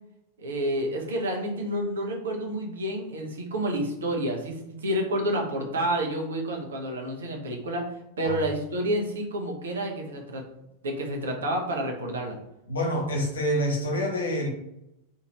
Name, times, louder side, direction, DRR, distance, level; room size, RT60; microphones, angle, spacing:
voice 1, 0.4-7.8 8.2-10.4 10.8-12.4, right 1 dB, 65° right, 1 dB, 0.7 m, -29 dB
voice 2, 12.7-14.5, equal, 70° left, 0 dB, 1.0 m, -27 dB
2.7 x 2.6 x 3.0 m, 0.83 s
figure-of-eight pair, 90°, 0 cm